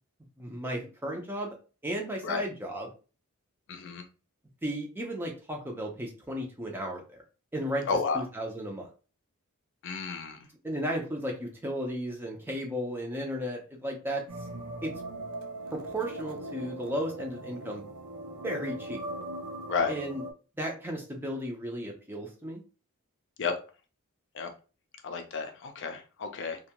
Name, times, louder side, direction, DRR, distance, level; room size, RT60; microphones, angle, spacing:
voice 1, 0.4-1.6 1.8-2.9 4.6-7.2 7.5-7.9 8.1-8.9 10.6-14.2 14.8-14.9 15.7-17.8 18.4-19.0 19.9-20.2 20.6-22.6, equal, 10° right, 0 dB, 0.5 m, -34 dB
voice 2, 3.7-4.0 7.9-8.2 9.8-10.4 19.7-20.0 23.4-23.5 24.3-24.5 25.0-26.6, left 5 dB, 55° left, 5 dB, 0.5 m, -31 dB
sound 1, 14.3-20.3, right 1 dB, 85° right, 0.5 m, -40 dB
2.6 x 2.2 x 2.9 m, 0.34 s
head